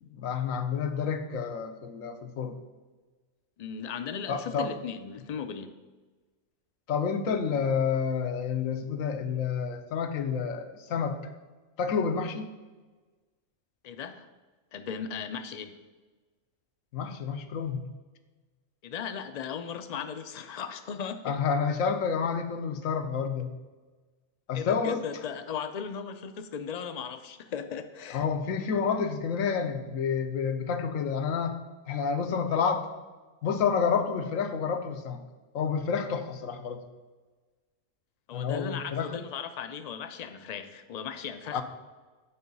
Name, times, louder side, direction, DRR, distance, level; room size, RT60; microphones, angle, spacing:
voice 1, 0.0-2.6 4.3-4.7 6.9-11.2 11.8-12.5 16.9-17.9 21.2-23.5 24.5-25.0 28.1-31.6 31.9-32.9 33.4-35.2 35.5-36.8 38.3-39.1 41.5-41.6, left 6 dB, 85° left, 7 dB, 1.1 m, -29 dB
voice 2, 3.6-5.8 13.8-14.3 14.7-15.8 18.8-21.4 24.5-28.2 38.3-41.6, left 7 dB, 65° left, 9 dB, 0.4 m, -37 dB
8.9 x 4.6 x 5.3 m, 1.3 s
omnidirectional pair, 1.4 m